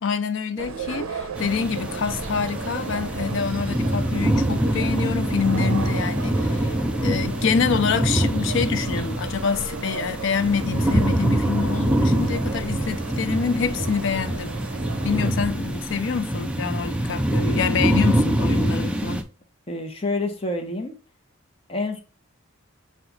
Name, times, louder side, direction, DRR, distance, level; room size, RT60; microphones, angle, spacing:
voice 1, 0.0-14.5 15.0-19.2, left 6 dB, 60° left, 0.4 m, -26 dB
sound 1, 0.6-15.3, right 5 dB, 80° right, 0.6 m, -35 dB
sound 2, 1.4-19.2, right 1 dB, 5° right, 0.3 m, -24 dB
voice 2, 19.7-21.0 21.7-22.0, left 2 dB, 25° left, 0.7 m, -27 dB
5.8 x 2.3 x 3.9 m
head